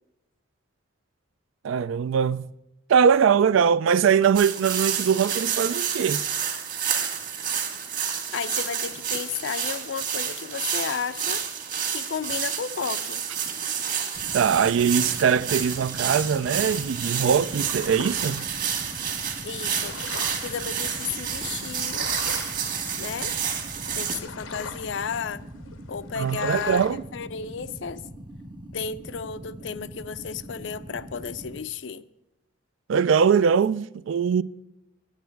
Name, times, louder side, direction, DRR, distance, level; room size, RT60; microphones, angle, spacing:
voice 1, 1.6-2.5 2.9-6.2 14.3-18.5 26.2-27.0 32.9-34.4, right 7 dB, 75° right, 0.3 m, -21 dB
sound 1, 4.3-24.2, right 8 dB, 40° right, 1.6 m, -29 dB
voice 2, 8.3-11.4 11.9-13.2 19.4-19.9 20.4-22.1 23.0-23.3 23.9-25.4 25.9-28.0 28.7-32.0, left 6 dB, 60° left, 0.4 m, -33 dB
sound 2, 14.1-31.6, right 1 dB, 20° right, 0.6 m, -42 dB
sound 3, 17.3-26.9, left 4 dB, 85° left, 0.9 m, -42 dB
9.2 x 9.0 x 4.5 m
head